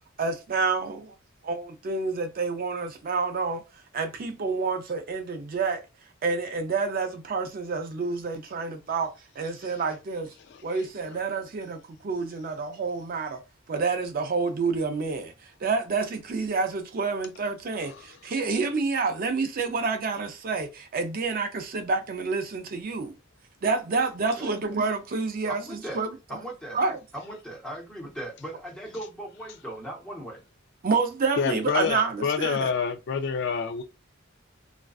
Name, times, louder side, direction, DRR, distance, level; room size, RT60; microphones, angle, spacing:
voice 1, 0.2-1.1 1.4-3.6 3.9-5.8 6.2-10.3 10.6-13.4 13.7-15.3 15.6-23.2 23.6-26.4 26.7-27.0 30.8-32.7, right 4 dB, 45° right, 0.4 m, -28 dB
voice 2, 25.5-26.0 26.3-26.8 27.1-30.4, right 1 dB, 5° left, 0.8 m, -38 dB
voice 3, 31.4-33.8, left 6 dB, 60° left, 0.3 m, -27 dB
2.4 x 2.2 x 2.3 m
head